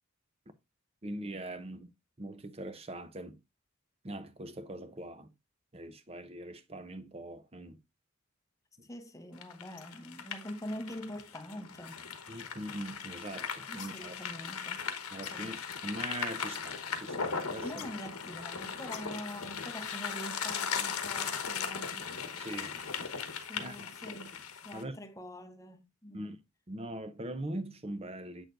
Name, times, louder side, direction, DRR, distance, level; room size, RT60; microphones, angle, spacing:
voice 1, 1.0-1.9 2.2-3.4 4.0-5.3 5.7-7.8 8.8-8.9 12.3-14.2 15.1-17.9 22.3-22.8 23.6-23.9 24.7-24.9 26.1-26.4 26.7-28.5, right 1 dB, 25° right, 0.7 m, -42 dB
voice 2, 8.8-12.0 13.7-14.9 15.3-15.6 17.6-22.1 23.4-26.4, equal, 15° left, 0.8 m, -45 dB
sound 1, 9.4-24.8, left 6 dB, 80° left, 1.1 m, -38 dB
7.8 x 6.4 x 2.5 m
head